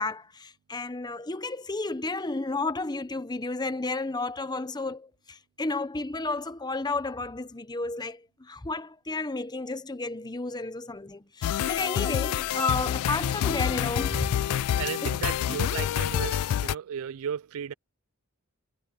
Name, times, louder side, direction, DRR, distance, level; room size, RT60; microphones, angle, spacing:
voice 1, 0.0-14.3 15.0-15.1 15.5-15.6, left 3 dB, 20° left, 0.9 m, -32 dB
sound 1, 11.4-16.7, left 10 dB, 80° left, 0.3 m, -27 dB
voice 2, 14.8-17.7, right 8 dB, 70° right, 0.3 m, -34 dB
head